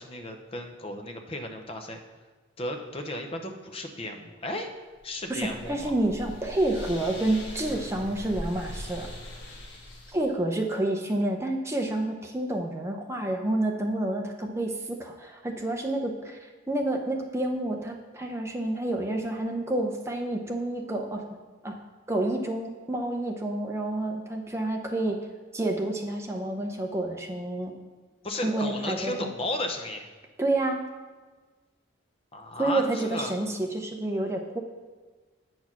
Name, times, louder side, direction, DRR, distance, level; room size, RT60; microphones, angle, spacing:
voice 1, 0.0-2.0 2.6-4.7 5.0-5.9 28.2-30.1 32.3-33.3, left 1 dB, 30° left, 4 dB, 0.7 m, -34 dB
sound 1, 5.0-10.3, left 1 dB, 70° left, 1.3 m, -41 dB
voice 2, 5.3-9.1 10.1-21.2 21.6-21.8 22.1-25.2 25.5-27.7 28.4-29.3 30.4-30.8 32.6-34.6, right 1 dB, 15° right, 2 dB, 0.7 m, -29 dB
8.3 x 4.5 x 5.9 m, 1.3 s
head